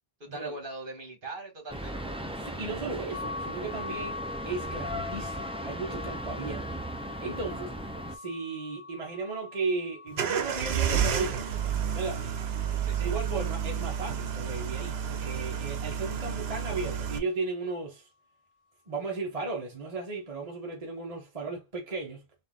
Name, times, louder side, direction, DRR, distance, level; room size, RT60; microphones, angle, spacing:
voice 1, 0.2-2.0 12.8-13.1, right 2 dB, 55° right, 1.7 m, -40 dB
sound 1, 1.7-8.1, right 1 dB, 5° right, 0.5 m, -37 dB
voice 2, 2.3-6.7 7.2-7.7 8.1-12.2 12.9-18.1 18.9-22.2, right 3 dB, 35° right, 1.1 m, -35 dB
sound 2, 3.1-14.9, left 4 dB, 55° left, 0.4 m, -44 dB
sound 3, 10.1-17.2, right 8 dB, 75° right, 1.0 m, -30 dB
4.1 x 2.5 x 3.6 m
omnidirectional pair, 1.1 m